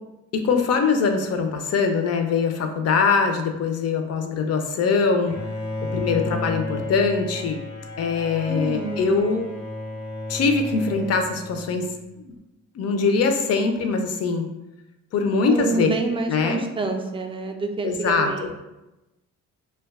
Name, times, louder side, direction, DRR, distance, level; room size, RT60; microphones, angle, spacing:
voice 1, 0.3-5.3 5.9-7.6 8.0-9.5 10.3-11.9 12.2-12.3 12.8-14.5 15.1-15.9 16.3-16.6 17.8-18.5, left 4 dB, 55° left, 5 dB, 0.5 m, -22 dB
Bowed string instrument, 5.2-12.0, left 2 dB, 80° left, 0.9 m, -32 dB
voice 2, 8.5-9.1 15.5-18.6, right 3 dB, 20° right, 4 dB, 0.3 m, -28 dB
2.5 x 2.2 x 3.4 m, 1.0 s
cardioid pair, 90°, 30 cm